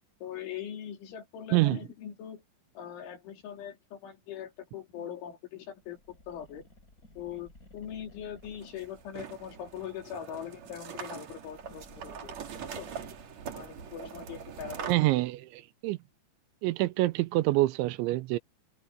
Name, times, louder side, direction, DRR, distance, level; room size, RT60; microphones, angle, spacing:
voice 1, 0.2-2.4 2.8-6.7 7.2-12.4 12.7-12.9 13.5-15.2, left 9 dB, 80° left, 6.0 m, -41 dB
sound 1, 5.8-10.3 11.2-14.9, left 2 dB, 15° left, 6.3 m, -56 dB
sound 2, 8.4-14.9, right 7 dB, 50° right, 2.4 m, -43 dB
voice 2, 14.9-16.0 16.6-18.4, right 19 dB, 80° right, 3.0 m, -26 dB
omnidirectional pair, 5.4 m